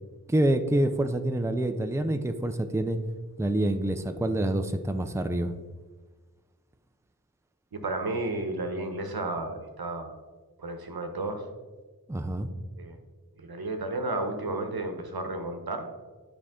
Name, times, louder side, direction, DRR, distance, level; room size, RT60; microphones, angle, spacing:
voice 1, 0.3-3.0 3.4-5.5 12.1-12.5, right 1 dB, 10° right, 8 dB, 0.5 m, -27 dB
voice 2, 7.7-10.2 10.6-11.4 12.8-13.0 13.4-15.9, right 2 dB, 90° right, 5 dB, 0.9 m, -32 dB
9.3 x 4.9 x 3.7 m, 1.3 s
wide cardioid pair, 40°, 36 cm